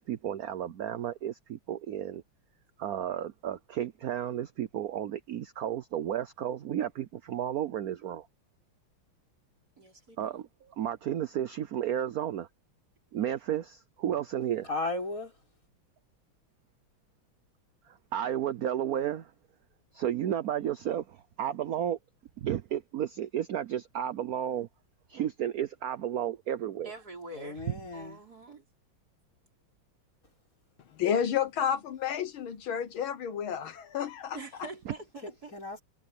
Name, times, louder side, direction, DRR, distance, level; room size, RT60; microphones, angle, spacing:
voice 1, 0.0-2.2 2.8-8.3 10.2-12.5 13.1-14.7 18.1-19.3 19.9-22.0 22.4-24.7 25.1-26.9 34.9-35.0, right 10 dB, 65° right, 0.9 m, -32 dB
voice 2, 9.8-10.4 26.8-27.6 27.9-28.6 34.3-35.5, right 2 dB, 45° right, 5.0 m, -45 dB
voice 3, 14.7-15.4 27.3-28.2 35.2-35.8, left 2 dB, 40° left, 6.9 m, -35 dB
voice 4, 31.0-34.4, left 8 dB, 75° left, 1.9 m, -30 dB
omnidirectional pair, 2.3 m